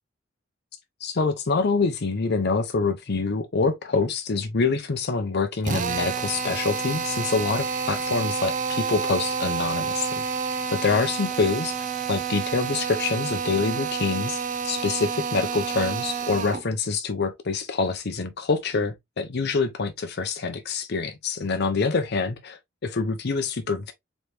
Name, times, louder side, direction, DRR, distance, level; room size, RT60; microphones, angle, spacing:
voice 1, 1.0-10.3 10.7-23.9, left 4 dB, 55° left, 0.6 m, -26 dB
Drill, 5.6-16.7, right 5 dB, 40° right, 0.5 m, -29 dB
4.1 x 3.3 x 3.1 m
head